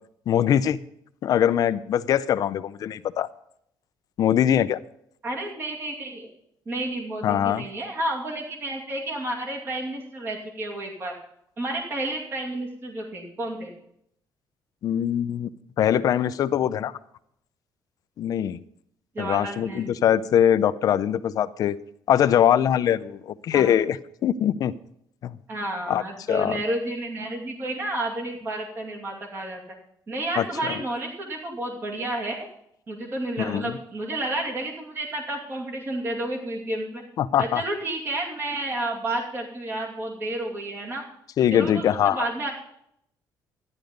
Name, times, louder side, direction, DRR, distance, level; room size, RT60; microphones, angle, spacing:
voice 1, 0.3-0.8 1.2-3.3 4.2-4.8 7.2-7.6 14.8-15.5 15.8-16.9 18.2-18.6 19.2-21.8 22.1-24.0 24.2-24.7 25.2-25.4 25.9-26.0 26.3-26.6 30.4-30.7 33.4-33.7 37.2-37.6 41.4-42.3, left 10 dB, 50° left, 14 dB, 0.5 m, -22 dB
voice 2, 5.2-6.3 6.7-11.1 11.6-13.7 19.1-20.1 23.5-23.8 25.5-29.6 30.1-32.5 32.9-37.0 37.4-41.0 41.5-42.5, right 1 dB, 30° right, 0 dB, 2.5 m, -31 dB
13.0 x 10.5 x 5.2 m, 0.72 s
cardioid pair, 170°, 8 cm